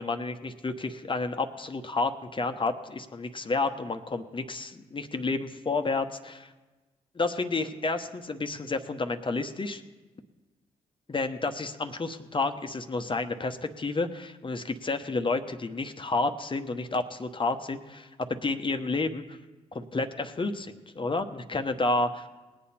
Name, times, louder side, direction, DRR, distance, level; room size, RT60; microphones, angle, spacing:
voice 1, 0.0-6.5 7.1-9.8 11.1-19.4 19.7-22.5, left 3 dB, 30° left, 7 dB, 1.1 m, -30 dB
19.5 x 8.4 x 4.3 m, 1.2 s
hypercardioid pair, 45°, 17 cm